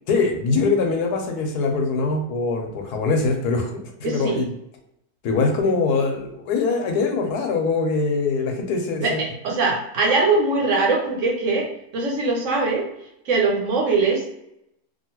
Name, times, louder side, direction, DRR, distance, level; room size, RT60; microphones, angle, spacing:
voice 1, 0.1-4.5 5.2-9.2, left 4 dB, 90° left, 2 dB, 1.3 m, -23 dB
voice 2, 4.0-4.4 9.0-12.9 13.3-14.3, right 3 dB, 60° right, -1 dB, 1.0 m, -22 dB
3.0 x 2.5 x 2.9 m, 0.81 s
omnidirectional pair, 1.6 m